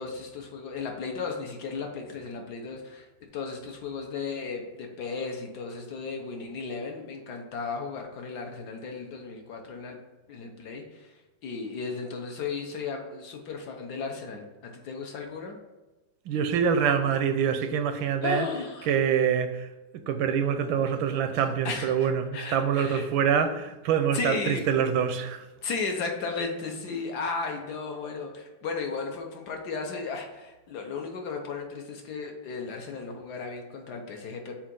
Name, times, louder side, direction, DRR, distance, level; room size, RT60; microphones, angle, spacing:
voice 1, 0.0-3.1 3.3-10.0 10.3-11.1 11.4-15.6 18.2-18.9 21.6-23.1 24.1-24.6 25.6-34.5, left 4 dB, 65° left, 1.2 m, -35 dB
voice 2, 16.3-18.5 18.9-19.7 20.1-25.4, right 7 dB, 85° right, 1.3 m, -25 dB
7.2 x 2.5 x 5.2 m
omnidirectional pair, 2.1 m